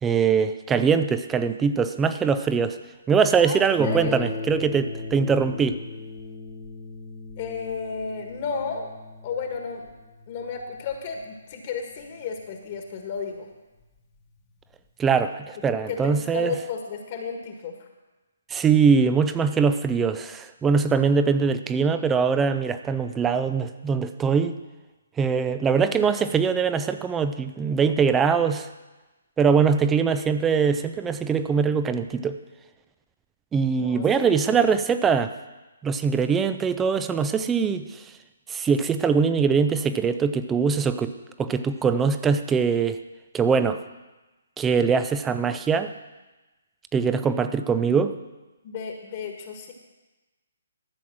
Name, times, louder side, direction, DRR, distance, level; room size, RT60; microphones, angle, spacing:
voice 1, 0.0-2.8 3.1-5.8 15.0-16.5 18.5-24.6 25.2-28.7 29.4-32.4 33.5-35.3 35.8-38.1 38.5-41.1 41.4-43.0 43.3-43.8 44.6-45.9 46.9-48.2, right 6 dB, 10° right, 11 dB, 0.5 m, -22 dB
voice 2, 3.4-4.4 7.4-8.9 9.2-9.9 10.3-13.5 15.9-17.7 26.1-26.3 33.8-34.3 48.6-49.7, left 5 dB, 40° left, 3 dB, 1.5 m, -33 dB
Harp, 3.8-13.0 13.8-13.9 14.4-14.5, left 3 dB, 15° left, 1.2 m, -37 dB
13.0 x 7.3 x 6.1 m, 1.1 s
figure-of-eight pair, 140°, 0 cm